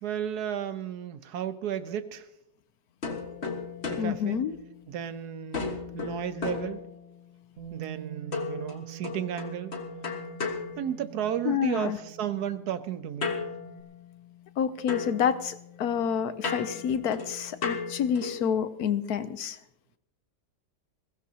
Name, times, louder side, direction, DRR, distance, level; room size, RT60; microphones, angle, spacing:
voice 1, 0.0-2.3 3.9-4.4 4.9-6.8 7.7-9.7 10.8-13.3, right 9 dB, 70° right, 12 dB, 1.2 m, -33 dB
Barrel hits, 3.0-5.1 5.5-7.4 8.3-11.5 13.2-14.6 14.9-18.5, left 5 dB, 40° left, 1.7 m, -36 dB
voice 2, 4.0-4.6 11.4-12.0 14.6-19.6, left 8 dB, 70° left, 12 dB, 1.1 m, -28 dB
Bass guitar, 7.6-13.8, right 13 dB, 55° right, 2.0 m, -46 dB
21.5 x 16.0 x 2.8 m, 0.81 s
omnidirectional pair, 1.8 m